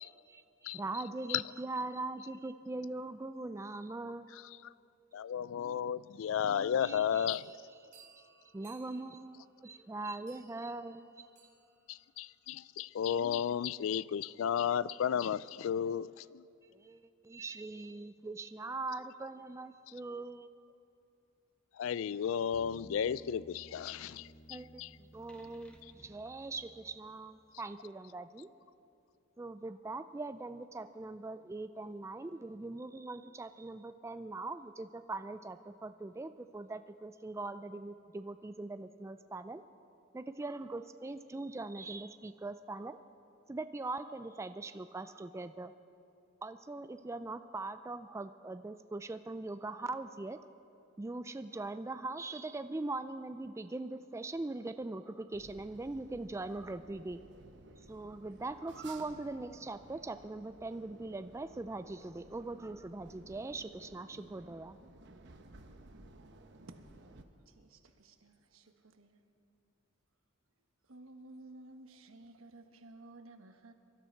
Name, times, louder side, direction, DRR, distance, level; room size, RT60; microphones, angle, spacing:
voice 1, 0.0-4.3 6.8-7.5 7.9-8.1 8.5-11.2 16.7-20.5 24.5-28.5 29.4-39.6 40.1-43.0 43.5-45.7 46.4-50.4 51.0-57.2 57.9-64.8, right 2 dB, 15° right, 10 dB, 0.3 m, -41 dB
voice 2, 5.1-7.5 11.9-16.1 21.8-24.9, left 8 dB, 65° left, 20 dB, 0.3 m, -33 dB
sound 1, 7.0-12.1, right 5 dB, 35° right, 3.6 m, -63 dB
sound 2, 22.5-27.4, equal, 5° left, 1.0 m, -56 dB
sound 3, 55.3-67.2, right 2 dB, 55° right, 1.0 m, -56 dB
voice 3, 67.5-69.2 70.9-73.7, right 2 dB, 80° right, 6 dB, 1.2 m, -54 dB
23.5 x 13.0 x 4.5 m, 2.6 s
head